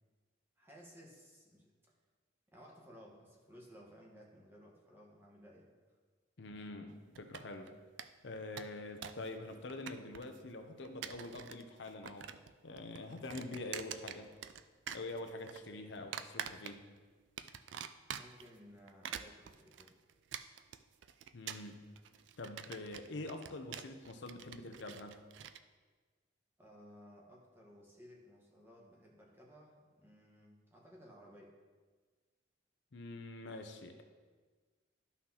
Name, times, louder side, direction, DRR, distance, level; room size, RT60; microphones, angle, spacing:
voice 1, 0.6-1.9 2.5-6.0 18.1-19.9 26.6-31.5, equal, 10° right, -2 dB, 1.2 m, -58 dB
voice 2, 6.4-7.7 8.2-12.3 12.6-14.3 14.9-16.8 21.3-21.8 22.4-25.2 32.9-34.0, left 2 dB, 65° left, 5 dB, 0.6 m, -45 dB
sound 1, 7.1-7.7 8.0-8.1 8.4-9.3 9.5-10.4 10.8-11.6 11.9-12.5 12.8-14.6 14.9-15.6 16.1-17.0 17.4-18.5 18.9-25.6, right 9 dB, 70° right, 0.3 m, -45 dB
12.0 x 5.7 x 2.9 m, 1.4 s
head